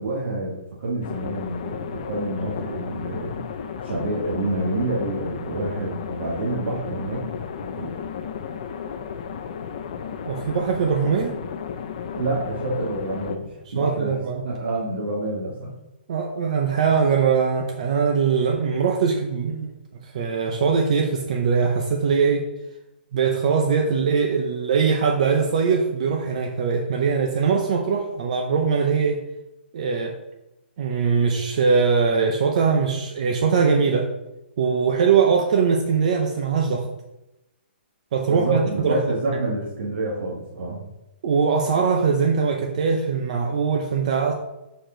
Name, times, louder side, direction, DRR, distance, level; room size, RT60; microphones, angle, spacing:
voice 1, 0.0-3.4 3.8-7.2 7.8-7.9 12.1-14.2 14.4-15.7 38.3-40.8, right 2 dB, 75° right, -5 dB, 1.7 m, -28 dB
sound 1, 1.0-13.4, left 7 dB, 35° left, 0.5 m, -33 dB
voice 2, 10.2-11.3 13.7-14.4 16.1-19.7 20.0-22.4 23.1-29.2 29.7-30.1 30.8-34.1 34.6-36.9 38.1-39.0 41.2-44.3, right 5 dB, 40° right, 3 dB, 0.6 m, -21 dB
6.6 x 4.6 x 3.8 m, 0.94 s
hypercardioid pair, 170°, 6 cm